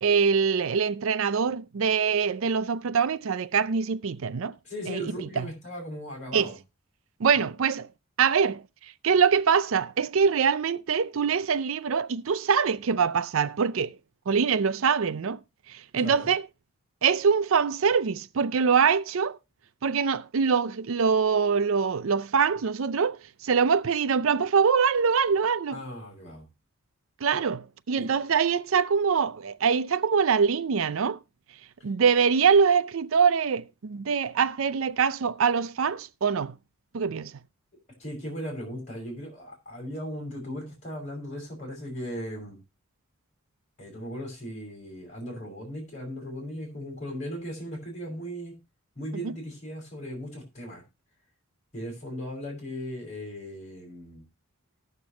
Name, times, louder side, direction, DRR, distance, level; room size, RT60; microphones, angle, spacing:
voice 1, 0.0-4.5 4.9-5.0 5.4-5.5 6.3-6.5 7.2-7.9 8.2-8.6 9.0-14.0 14.3-15.4 15.7-16.4 17.0-19.4 19.8-25.8 27.2-31.2 31.8-36.6 36.9-37.3 49.2-49.3, right 6 dB, 70° right, 0.5 m, -24 dB
voice 2, 4.6-6.6 16.0-16.3 25.7-26.4 28.0-28.1 38.0-42.6 43.8-48.5 48.9-50.8 51.7-54.2, equal, 35° left, 5.9 m, -37 dB
19.0 x 6.7 x 3.0 m
head